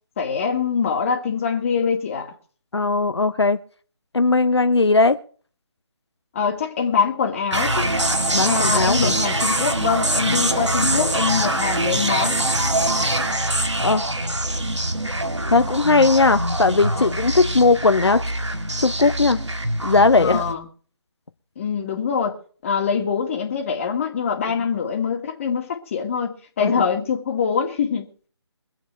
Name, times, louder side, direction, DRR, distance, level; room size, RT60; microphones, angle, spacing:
voice 1, 0.2-2.3 6.3-7.9 8.3-12.4 17.0-17.2 20.2-20.6 21.6-22.4 22.6-28.1, left 6 dB, 30° left, 2.2 m, -24 dB
voice 2, 2.7-3.6 4.1-5.2 8.3-9.1 13.8-14.0 15.5-18.2 18.8-19.4 19.8-20.4 26.6-26.7, left 3 dB, 65° left, 1.0 m, -18 dB
sound 1, 7.5-20.5, right 1 dB, 80° right, 2.0 m, -23 dB
23.5 x 8.3 x 4.6 m
figure-of-eight pair, 150°, 15 cm